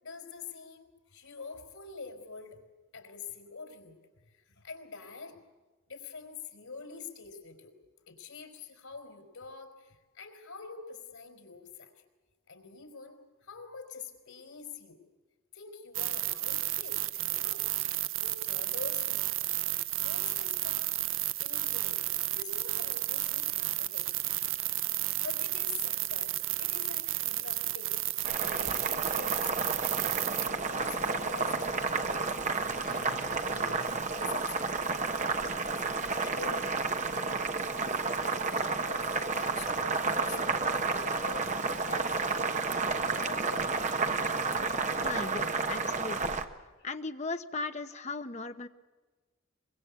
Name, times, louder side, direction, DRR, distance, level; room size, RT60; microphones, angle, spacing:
voice 1, 0.0-2.6 2.9-4.0 4.3-5.4 5.9-7.7 8.1-12.0 12.5-15.0 15.5-17.7 18.2-19.3 20.0-21.0 21.4-24.8 25.2-27.9 28.4-29.5 30.4-33.0 33.4-33.9 34.2-35.7 36.1-37.3 37.7-42.7 43.1-43.7 46.8-46.9, left 4 dB, 90° left, 6 dB, 4.3 m, -46 dB
sound 1, 15.9-30.5, right 15 dB, 75° right, 0.7 m, -32 dB
Boiling, 28.2-46.4, right 4 dB, 35° right, 1.3 m, -31 dB
Growling, 32.6-34.9 35.2-35.6 35.9-36.0, left 4 dB, 50° left, 4.0 m, -51 dB
voice 2, 45.0-46.3 46.8-48.7, left 3 dB, 35° left, 8 dB, 1.0 m, -37 dB
24.0 x 22.5 x 8.2 m, 1.2 s
head